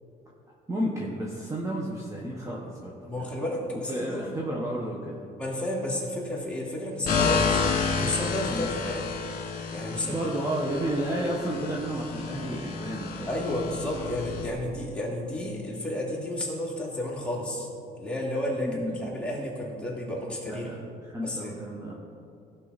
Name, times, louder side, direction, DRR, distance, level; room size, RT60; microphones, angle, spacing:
voice 1, 0.7-3.3 3.7-5.3 8.4-8.7 10.0-13.3 13.5-13.7 18.6-19.1 20.5-21.9, right 1 dB, 15° right, -3 dB, 1.2 m, -32 dB
voice 2, 3.1-4.3 5.4-7.6 8.0-9.1 9.7-10.2 13.3-17.7 18.0-20.7 21.2-21.6, left 1 dB, 5° left, -4 dB, 2.5 m, -32 dB
sound 1, 7.0-14.5, left 5 dB, 55° left, 2.0 m, -30 dB
16.0 x 5.7 x 4.1 m, 2.5 s
cardioid pair, 110°, 17 cm